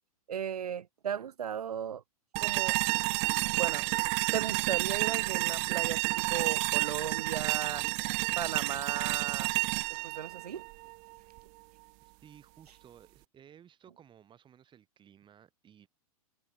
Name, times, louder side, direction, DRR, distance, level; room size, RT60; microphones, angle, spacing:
voice 1, 0.3-2.0 2.4-2.8 3.5-3.9 4.3-7.9 8.4-9.5 9.9-10.7, right 8 dB, 85° right, 0.8 m, -36 dB
sound 1, 2.3-11.4, right 40 dB or more, 40° right, 0.5 m, -30 dB
voice 2, 12.0-15.9, right 9 dB, 25° right, 6.7 m, -57 dB
hypercardioid pair, 110°, 19 cm